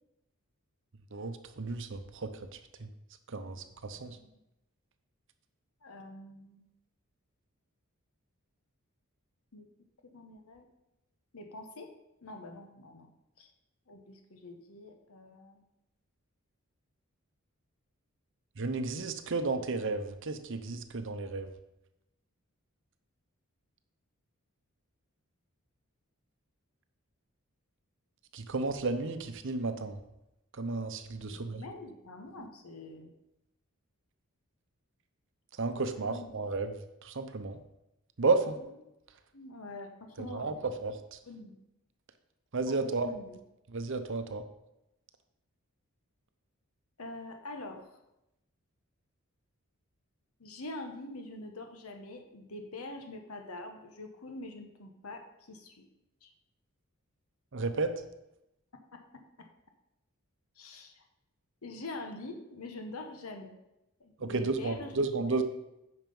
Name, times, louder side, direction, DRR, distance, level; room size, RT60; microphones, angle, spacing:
voice 1, 1.1-2.3 2.8-2.9 3.3-4.2 18.6-21.5 28.3-30.0 30.5-31.6 35.6-36.7 37.0-37.6 38.2-38.6 40.2-40.6 40.8-41.2 42.5-43.1 43.7-44.4 57.5-57.9 64.2-65.4, right 3 dB, 55° right, 9 dB, 0.7 m, -32 dB
voice 2, 5.8-6.6 9.5-9.7 10.1-10.7 11.3-11.9 12.2-13.1 13.4-13.5 13.9-15.6 31.2-33.1 36.0-36.3 39.3-40.8 41.3-41.6 42.7-43.3 47.0-48.0 50.4-55.9 56.2-56.3 58.9-59.5 60.6-61.0 61.6-63.6 64.0-64.9 65.2-65.4, left 2 dB, 75° left, 5 dB, 1.1 m, -45 dB
9.1 x 5.8 x 5.4 m, 0.89 s
head